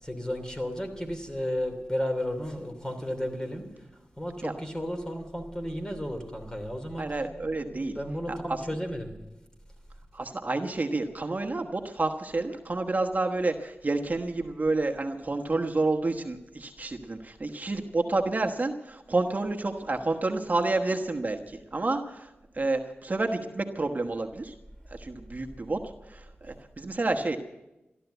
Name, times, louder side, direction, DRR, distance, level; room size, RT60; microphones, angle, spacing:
voice 1, 0.0-3.9 4.2-7.1 7.6-9.1, equal, 15° left, 5 dB, 3.0 m, -33 dB
voice 2, 7.0-8.0 8.3-8.6 10.1-24.5 24.9-25.8 26.1-27.4, right 2 dB, 45° right, 4 dB, 1.2 m, -29 dB
14.5 x 12.0 x 8.0 m, 0.98 s
cardioid pair, 55°, 4 cm